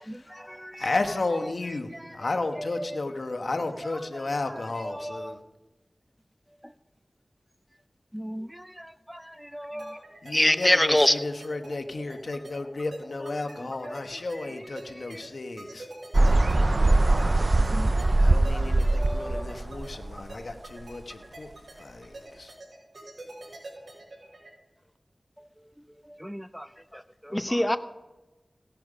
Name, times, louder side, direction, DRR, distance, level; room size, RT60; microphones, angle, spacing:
voice 1, 0.0-5.4 10.2-15.9 18.2-21.5 21.8-22.5, left 2 dB, 75° left, 1.2 m, -33 dB
voice 2, 5.0-5.3 8.1-8.5 9.5-9.9 17.7-17.9 18.5-18.6 19.0-19.4 26.2-26.6, equal, 5° right, 0.5 m, -37 dB
sound 1, 9.8-24.5, right 2 dB, 80° right, 5.8 m, -45 dB
voice 3, 10.3-11.3 27.3-27.8, left 1 dB, 20° left, 0.9 m, -21 dB
sound 2, 16.1-20.5, right 2 dB, 55° right, 0.5 m, -22 dB
16.5 x 10.5 x 5.1 m
cardioid pair, 40°, 0 cm